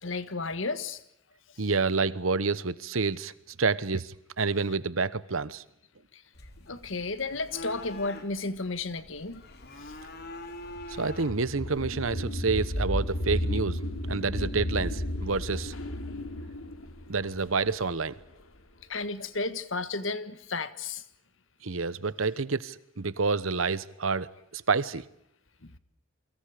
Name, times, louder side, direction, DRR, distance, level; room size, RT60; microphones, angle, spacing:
voice 1, 0.0-1.0 1.5-1.6 6.1-6.2 6.6-9.4 9.8-10.0 18.9-21.0 25.6-25.8, left 3 dB, 65° left, 1.6 m, -33 dB
voice 2, 1.6-3.3 3.6-5.6 11.0-13.8 14.1-15.7 17.1-18.1 21.6-25.0, right 4 dB, 85° right, 1.1 m, -28 dB
sound 1, 6.3-12.3, left 2 dB, 50° left, 3.1 m, -45 dB
sound 2, 9.4-18.4, left 1 dB, 90° left, 2.9 m, -33 dB
29.0 x 24.5 x 5.1 m
head